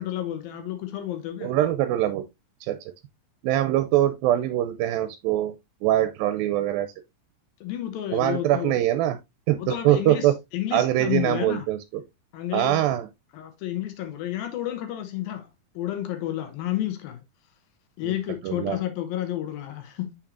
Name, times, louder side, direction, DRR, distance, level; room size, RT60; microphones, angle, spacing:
voice 1, 0.0-1.5 3.5-3.7 7.6-8.8 9.6-11.7 12.3-12.8 13.3-15.5 15.7-17.2 18.0-20.2, left 13 dB, 85° left, 2.8 m, -31 dB
voice 2, 1.4-2.2 2.7-2.8 3.4-5.5 5.8-6.9 8.1-9.2 9.5-10.3 10.7-12.0 12.5-13.1 18.0-18.1 18.4-18.8, right 13 dB, 90° right, 2.3 m, -23 dB
6.5 x 5.9 x 2.5 m
omnidirectional pair, 4.1 m